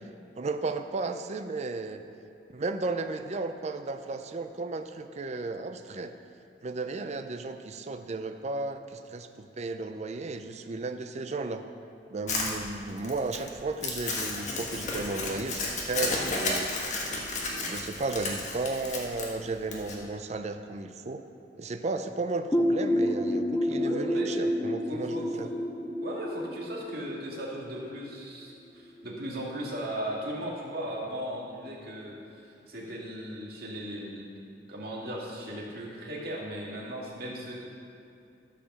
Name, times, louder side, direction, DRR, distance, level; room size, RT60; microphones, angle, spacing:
voice 1, 0.4-2.0 2.5-6.1 6.6-11.6 12.1-21.2 21.6-25.5, right 3 dB, 40° right, 8 dB, 0.5 m, -34 dB
Crumpling crinkling, 12.3-20.0, left 3 dB, 45° left, 1.6 m, -33 dB
sound 1, 22.5-28.1, equal, 15° left, 0.5 m, -29 dB
voice 2, 23.6-24.4 24.9-25.5 26.0-34.3 34.7-37.6, equal, 60° right, -3 dB, 2.1 m, -37 dB
13.0 x 5.1 x 6.7 m, 2.6 s
head